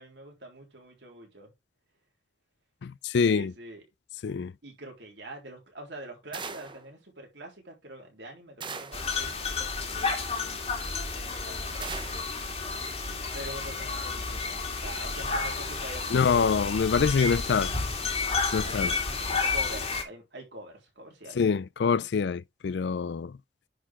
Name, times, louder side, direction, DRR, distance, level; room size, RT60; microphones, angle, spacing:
voice 1, 0.0-1.5 3.2-3.8 4.6-10.2 11.1-11.9 13.3-16.6 18.6-21.4, right 1 dB, 70° right, 3.6 m, -45 dB
voice 2, 2.8-3.5 4.2-4.5 16.1-17.7 18.5-18.9 21.4-23.3, left 5 dB, 65° left, 0.4 m, -25 dB
sound 1, 6.3-6.9 8.6-9.1 11.8-12.3, right 5 dB, 25° right, 0.8 m, -39 dB
sound 2, 8.9-20.0, left 4 dB, 35° left, 2.4 m, -31 dB
10.0 x 4.8 x 3.6 m
head